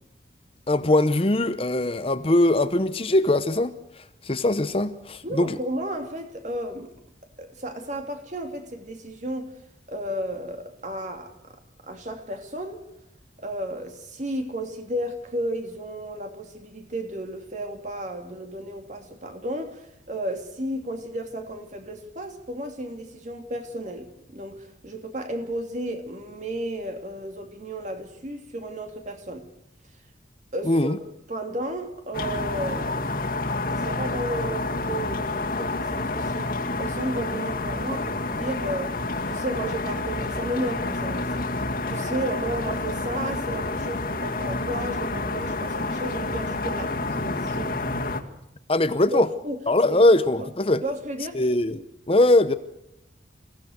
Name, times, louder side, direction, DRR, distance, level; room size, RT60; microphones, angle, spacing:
voice 1, 0.7-3.7 4.2-5.6 30.7-31.0 48.7-49.3 49.7-50.8 51.3-52.5, left 2 dB, 30° left, 0.8 m, -21 dB
voice 2, 5.2-6.9 7.4-9.5 9.9-11.6 11.8-12.8 13.4-29.4 30.5-31.0 31.3-33.0 33.7-38.9 39.2-47.8 49.1-49.6 49.9-50.5 50.8-51.4, right 1 dB, 40° right, 2.9 m, -33 dB
sound 1, 32.1-48.2, left 2 dB, 50° left, 2.2 m, -29 dB
28.0 x 17.0 x 6.6 m
head